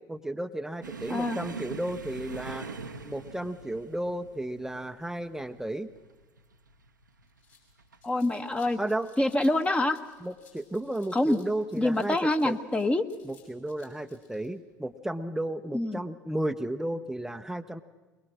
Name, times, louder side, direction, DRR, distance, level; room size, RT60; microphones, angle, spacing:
voice 1, 0.1-2.7 3.0-5.9 8.8-9.1 10.2-12.6 13.2-17.8, right 1 dB, 5° right, 10 dB, 0.6 m, -33 dB
sound 1, 0.8-8.0 8.3-8.7 9.0-9.2 10.1-10.6 11.6-11.8 13.1-13.3, right 4 dB, 85° right, 0.8 m, -43 dB
sound 2, 6.7-6.8 7.1-14.5, left 6 dB, 65° left, 5.9 m, -61 dB
voice 2, 8.0-8.8 9.2-10.0 11.1-11.4 11.7-13.1 15.7-16.0, left 1 dB, 10° left, 8 dB, 1.0 m, -26 dB
22.0 x 22.0 x 6.3 m, 1.2 s
figure-of-eight pair, 65°, 10 cm